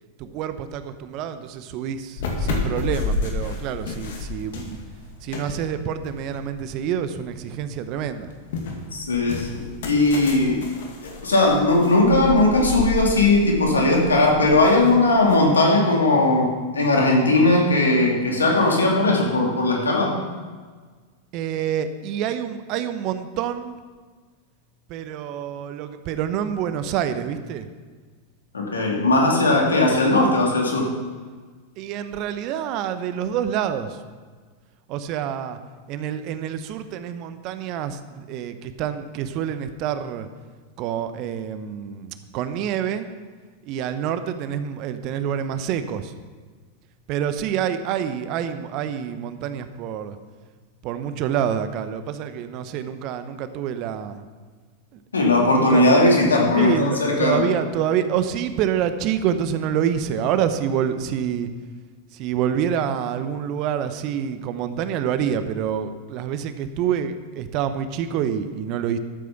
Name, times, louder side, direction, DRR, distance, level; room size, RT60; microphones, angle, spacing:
voice 1, 0.2-4.8 5.2-8.3 21.3-23.8 24.9-27.7 31.8-34.0 34.9-35.6 35.9-40.3 40.8-43.1 43.7-46.1 47.1-50.2 50.8-54.2 55.5-55.9 56.6-61.5 62.1-69.0, right 9 dB, 45° right, 10 dB, 0.9 m, -27 dB
sound 1, 2.2-7.3 7.7-15.3, left 3 dB, 65° left, 2.2 m, -31 dB
voice 2, 8.9-10.6 11.2-20.2 28.5-30.8 55.1-57.5, left 2 dB, 85° left, -1 dB, 2.7 m, -18 dB
12.5 x 8.4 x 6.0 m, 1.5 s
figure-of-eight pair, 95°, 0 cm